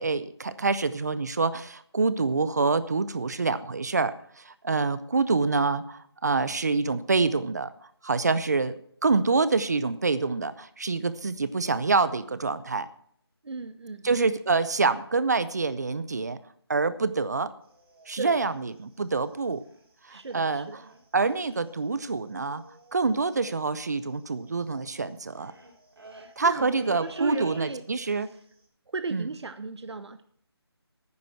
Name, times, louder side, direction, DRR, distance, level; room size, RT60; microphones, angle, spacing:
voice 1, 0.0-4.1 4.4-7.7 8.0-12.9 14.0-16.4 16.7-17.5 18.1-19.6 20.1-20.7 21.1-22.6 22.9-25.5 26.4-28.3 29.1-29.3, right 4 dB, 40° right, 14 dB, 0.6 m, -26 dB
voice 2, 13.4-14.2 18.2-18.4 20.1-20.8 26.1-28.2 28.9-30.2, right 3 dB, 80° right, 11 dB, 0.9 m, -36 dB
sound 1, 17.6-19.9 20.2-20.5 20.7-21.2 21.5-21.6 21.7-28.1 28.4-28.6, right 2 dB, 60° right, 4.0 m, -49 dB
10.0 x 9.6 x 6.1 m, 0.64 s
figure-of-eight pair, 170°, 14 cm